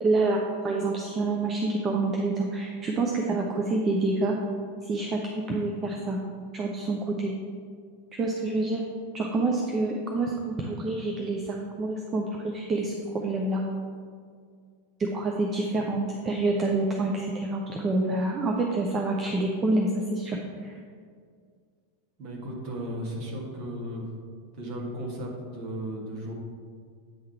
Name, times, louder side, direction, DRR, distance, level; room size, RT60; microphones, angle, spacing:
voice 1, 0.0-4.4 4.8-6.2 6.5-7.3 8.1-8.8 9.1-13.6 15.0-20.4 20.6-20.7, right 2 dB, 25° right, 0 dB, 0.6 m, -27 dB
voice 2, 22.2-24.1 24.5-26.3, equal, 40° right, -2 dB, 1.6 m, -35 dB
8.7 x 3.7 x 4.5 m, 2.1 s
figure-of-eight pair, 90°, 0 cm